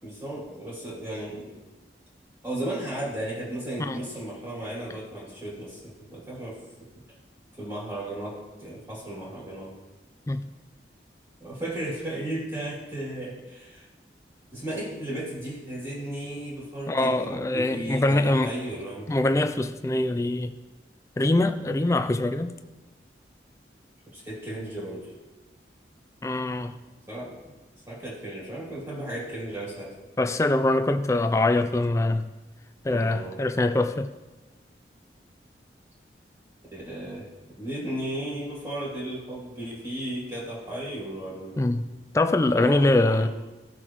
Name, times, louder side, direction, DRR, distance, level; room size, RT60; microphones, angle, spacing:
voice 1, 0.0-1.6 2.4-6.6 7.5-9.7 11.4-13.9 14.5-19.1 21.5-21.8 24.1-25.1 27.1-27.6 27.9-30.0 32.9-33.4 36.7-41.7 42.5-43.3, right 1 dB, 20° right, 2.4 m, -35 dB
voice 2, 16.9-18.5 19.1-20.5 21.2-22.5 26.2-26.7 30.2-32.3 32.8-34.1 41.6-41.9 42.1-43.3, left 2 dB, 15° left, 0.3 m, -23 dB
15.5 x 6.0 x 3.0 m
head